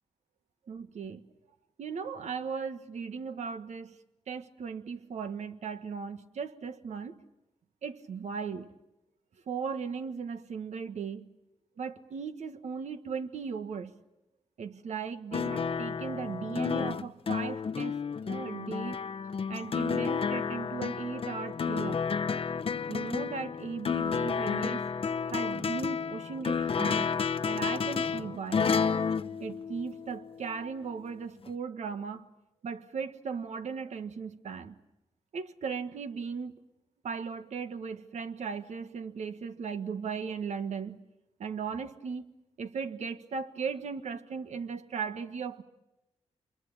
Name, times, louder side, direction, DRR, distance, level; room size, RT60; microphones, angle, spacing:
voice 1, 0.7-1.2 1.8-4.0 4.3-7.1 7.8-8.7 9.5-11.3 11.8-13.9 14.6-18.0 18.3-19.0 19.5-22.0 22.9-24.9 25.3-27.1 27.4-28.7 29.4-32.2 32.6-34.7 35.3-36.5 37.0-41.0 41.4-42.2 42.6-45.6, right 6 dB, 70° right, 1.5 m, -37 dB
sound 1, 15.3-30.2 31.5-31.6, left 6 dB, 50° left, 0.9 m, -31 dB
28.0 x 23.0 x 8.7 m
cardioid pair, 60°, 12 cm